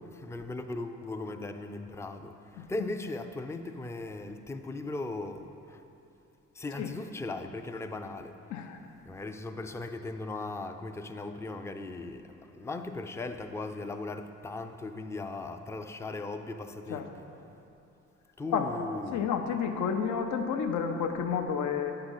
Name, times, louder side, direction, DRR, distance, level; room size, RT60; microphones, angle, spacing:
voice 1, 0.1-5.8 6.5-8.3 9.1-17.2 18.4-19.3, left 2 dB, 10° left, 6 dB, 0.4 m, -38 dB
voice 2, 18.5-21.9, left 6 dB, 70° left, 5 dB, 0.7 m, -31 dB
9.7 x 3.9 x 7.2 m, 2.7 s
cardioid pair, 90°, 30 cm